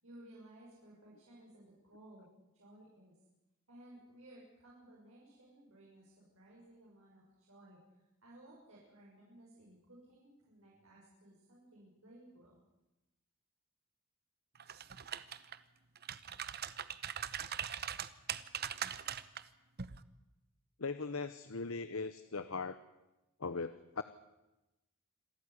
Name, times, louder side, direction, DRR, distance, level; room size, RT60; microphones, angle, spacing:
voice 1, 0.0-2.3 2.5-3.1 3.7-7.8 8.2-12.6, right 1 dB, 70° right, -5 dB, 6.9 m, -58 dB
sound 1, 14.6-15.6 16.0-19.4 19.8-20.0, right 9 dB, 45° right, 0.9 m, -41 dB
voice 2, 20.8-22.8 23.4-24.0, left 4 dB, 70° left, 12 dB, 0.9 m, -39 dB
26.5 x 13.5 x 9.9 m, 0.98 s
head